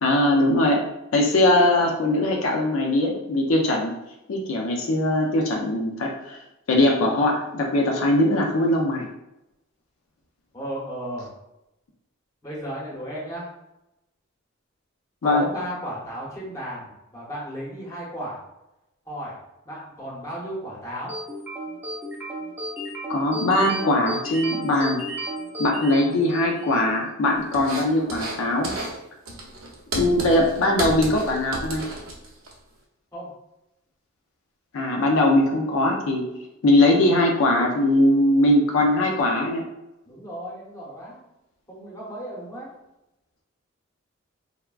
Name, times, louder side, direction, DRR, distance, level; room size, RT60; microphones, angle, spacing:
voice 1, 0.0-3.9 4.3-6.4 6.7-9.1 15.2-15.4 23.1-25.0 25.6-28.8 29.9-31.9 34.7-36.2 36.6-39.6, left 1 dB, 75° left, 0 dB, 0.5 m, -21 dB
voice 2, 10.5-11.3 12.4-13.5 15.2-18.4 19.1-19.4 19.6-21.1 33.1-33.3 40.1-41.2 41.7-42.7, equal, 15° left, -5 dB, 0.8 m, -34 dB
sound 1, 21.1-26.8, right 1 dB, 10° right, 0.4 m, -33 dB
sound 2, 27.5-28.4 28.6-29.0 29.3-32.5, right 2 dB, 75° right, 0.7 m, -32 dB
3.3 x 2.1 x 2.3 m, 0.90 s
head